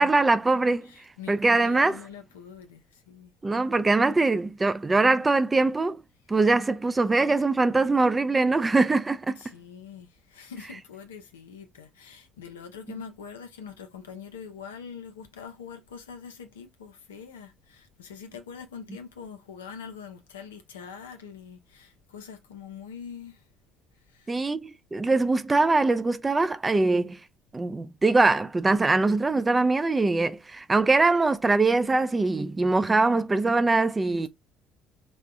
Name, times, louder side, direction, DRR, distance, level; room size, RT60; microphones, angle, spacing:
voice 1, 0.0-0.9 1.3-2.0 3.4-6.0 6.3-9.4 24.3-27.2 27.5-34.3, right 3 dB, 20° right, 0.3 m, -22 dB
voice 2, 0.8-3.3 9.4-23.4 24.1-24.5, left 7 dB, 90° left, 0.4 m, -44 dB
3.4 x 2.1 x 2.5 m
hypercardioid pair, 60°, 0 cm